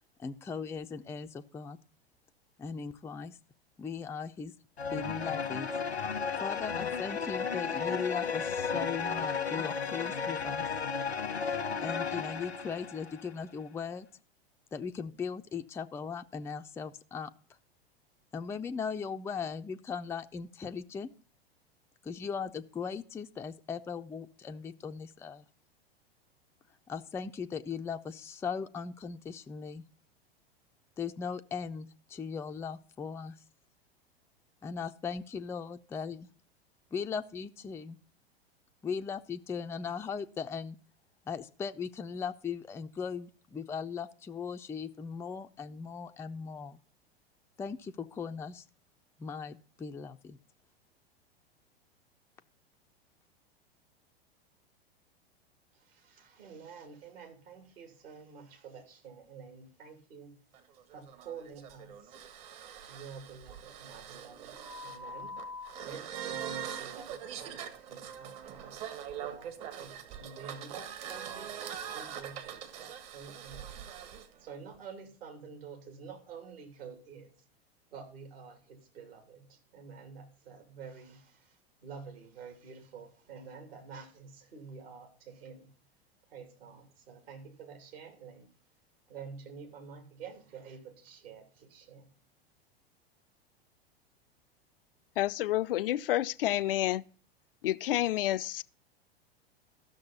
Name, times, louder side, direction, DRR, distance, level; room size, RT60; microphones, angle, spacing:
voice 1, 0.2-1.8 2.6-3.4 3.8-4.5 4.9-5.7 6.4-10.6 11.4-14.1 14.7-17.3 18.3-21.1 22.0-25.5 26.9-29.8 31.0-33.4 34.6-36.3 36.9-38.0 38.8-40.8 41.3-46.8 47.6-48.6 49.2-50.4, left 6 dB, 10° left, 0.4 m, -38 dB
sound 1, 4.8-13.3, left 6 dB, 90° left, 1.1 m, -34 dB
voice 2, 55.7-60.4 60.9-62.1 62.9-65.4 65.8-68.8 69.2-73.8 74.4-77.3 77.9-81.6 81.8-85.7 86.3-88.5 89.1-92.1, right 6 dB, 65° right, 3.2 m, -49 dB
sound 2, 60.5-74.3, right 7 dB, 50° right, 1.7 m, -43 dB
voice 3, 95.2-97.0 97.6-98.6, left 14 dB, 60° left, 0.5 m, -29 dB
14.0 x 6.4 x 4.1 m
figure-of-eight pair, 95°, 31 cm